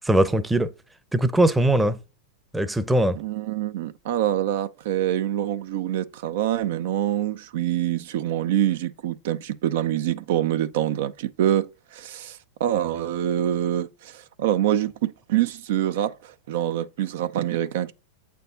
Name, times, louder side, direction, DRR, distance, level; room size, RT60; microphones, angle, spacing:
voice 1, 0.1-0.7 1.1-2.0 2.5-3.2, right 1 dB, 5° right, 0.7 m, -20 dB
voice 2, 3.2-17.9, right 11 dB, 65° right, 0.5 m, -25 dB
8.0 x 4.5 x 3.8 m
hypercardioid pair, 110°, 0 cm